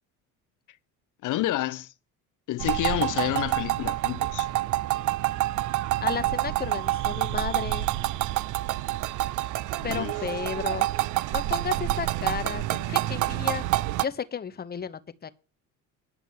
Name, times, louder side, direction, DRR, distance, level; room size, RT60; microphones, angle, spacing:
voice 1, 1.2-1.9 2.5-4.5 9.8-10.1, left 15 dB, 55° left, 0.8 m, -29 dB
sound 1, 2.6-14.1, right 16 dB, 55° right, 0.5 m, -27 dB
voice 2, 6.0-7.9 9.8-10.9 11.3-13.7 14.0-15.3, left 7 dB, 25° left, 0.9 m, -33 dB
9.5 x 5.9 x 7.2 m
supercardioid pair, 80°, 36 cm